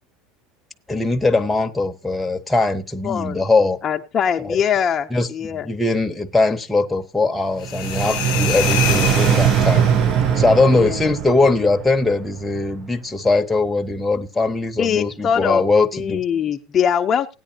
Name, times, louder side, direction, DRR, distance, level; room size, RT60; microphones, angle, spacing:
voice 1, 0.9-3.8 4.4-4.6 5.1-9.9 10.4-16.2, left 3 dB, 5° left, 0.8 m, -20 dB
voice 2, 3.0-3.4 3.8-5.7 10.7-11.1 14.8-15.6 15.9-17.3, left 8 dB, 30° left, 0.5 m, -22 dB
sound 1, 7.6-10.3, left 21 dB, 75° left, 0.6 m, -27 dB
sound 2, 7.6-12.8, right 8 dB, 40° right, 0.5 m, -20 dB
16.5 x 9.8 x 2.8 m
supercardioid pair, 145°, 0 cm